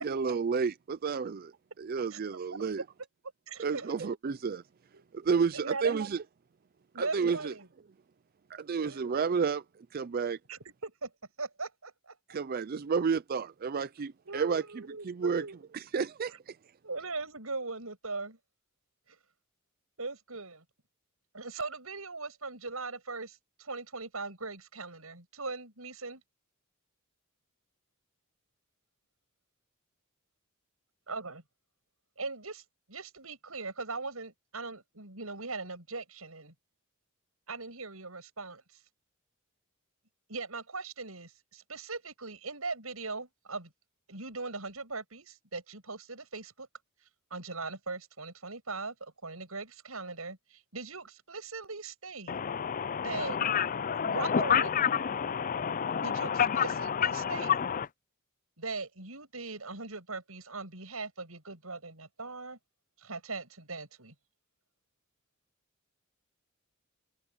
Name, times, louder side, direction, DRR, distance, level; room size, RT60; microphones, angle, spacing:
voice 1, 0.0-1.5 1.8-2.8 3.6-4.6 5.1-6.2 6.9-7.5 8.5-10.4 12.3-15.4 15.7-16.6, right 5 dB, 45° right, 0.4 m, -31 dB
voice 2, 3.5-4.0 4.9-5.0 5.5-6.0 6.9-7.7 8.8-9.0 10.5-11.1 11.4-12.4 14.3-15.6 16.8-18.4 19.1-19.2 20.0-20.6 21.3-26.2 31.1-31.4 32.2-32.6 32.9-36.5 37.5-38.8 40.3-43.7 44.1-46.7 47.3-52.4 53.0-53.4 54.0-54.7 56.0-57.6 58.6-62.6 63.0-64.1, right 3 dB, 85° right, 7.2 m, -40 dB
voice 3, 52.3-57.9, left 7 dB, 40° left, 0.5 m, -29 dB
head